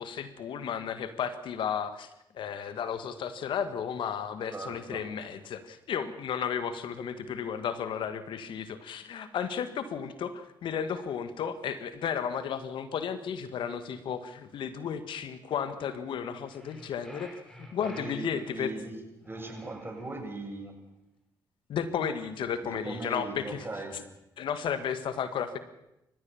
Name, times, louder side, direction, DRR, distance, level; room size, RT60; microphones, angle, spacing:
voice 1, 0.0-2.1 2.3-18.7 21.7-23.6 24.4-25.6, left 7 dB, 75° left, 11 dB, 1.8 m, -33 dB
voice 2, 4.5-5.1 17.8-19.0 19.2-20.8 22.6-24.0, right 2 dB, 25° right, 3 dB, 7.8 m, -39 dB
sound 1, 16.4-18.6 19.2-20.5, equal, 5° left, 6.5 m, -50 dB
28.5 x 14.5 x 7.2 m, 0.88 s
supercardioid pair, 50°, 9 cm